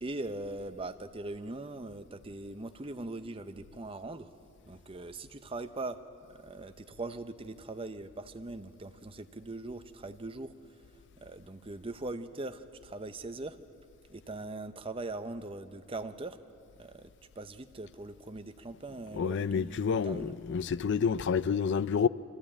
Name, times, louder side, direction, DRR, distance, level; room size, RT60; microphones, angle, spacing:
voice 1, 0.0-4.3 4.7-6.0 6.3-10.5 11.2-13.6 14.1-16.4 16.8-17.1 17.4-20.4, right 2 dB, 25° right, 0.7 m, -41 dB
voice 2, 19.1-22.1, left 6 dB, 55° left, 0.4 m, -29 dB
24.0 x 14.5 x 8.7 m
head